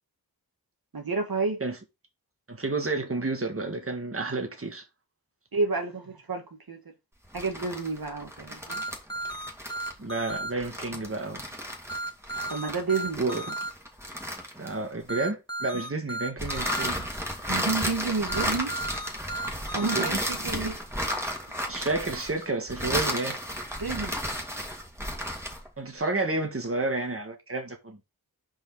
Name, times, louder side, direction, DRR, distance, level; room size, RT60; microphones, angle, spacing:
voice 1, 0.9-1.6 5.5-6.8 7.3-8.8 12.4-13.2 17.5-18.8 19.7-20.8 23.8-24.2, right 4 dB, 70° right, 1.6 m, -30 dB
voice 2, 2.5-4.8 10.0-11.4 13.2-13.5 14.6-17.0 19.9-20.2 21.7-23.4 25.8-28.0, right 3 dB, 35° right, 1.7 m, -30 dB
sound 1, 7.2-15.1 16.4-25.7, equal, 5° right, 2.2 m, -33 dB
sound 2, 8.7-10.5 11.9-13.7 15.1-16.9 18.3-20.1, right 1 dB, 10° left, 1.2 m, -34 dB
5.2 x 4.8 x 4.7 m
wide cardioid pair, 70°, 37 cm